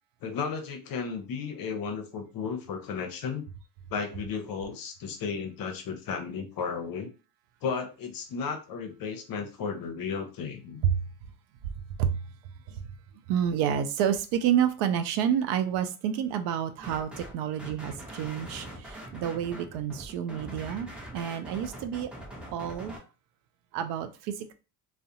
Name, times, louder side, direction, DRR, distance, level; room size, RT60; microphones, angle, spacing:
voice 1, 0.2-3.4 3.9-7.1 7.6-10.8, left 5 dB, 50° left, 0.7 m, -34 dB
voice 2, 13.3-22.1 22.5-22.9 23.7-24.5, right 9 dB, 65° right, 0.5 m, -29 dB
sound 1, 16.8-17.3 17.6-23.0, right 1 dB, ahead, 0.6 m, -43 dB
2.4 x 2.1 x 2.7 m
supercardioid pair, 80°, 46 cm